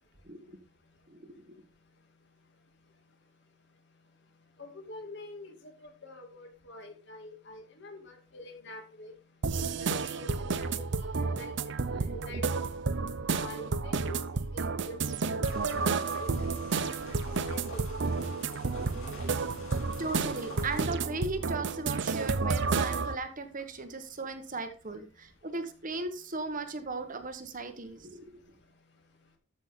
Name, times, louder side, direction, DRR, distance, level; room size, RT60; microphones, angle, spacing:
voice 1, 0.2-0.6 1.1-1.6 20.0-28.4, right 3 dB, 40° right, 8 dB, 1.3 m, -37 dB
voice 2, 4.6-5.5 6.0-9.1 9.6-10.8 11.2-11.5 12.0-12.6 13.3-14.2 14.5-15.0 15.3-16.5 17.5-17.8, left 1 dB, 55° left, 3 dB, 2.6 m, -45 dB
sound 1, 9.4-23.2, right 4 dB, 55° right, 0.6 m, -31 dB
sound 2, 15.4-21.0, left 2 dB, 80° left, 5.1 m, -47 dB
13.5 x 6.3 x 3.7 m, 0.37 s
head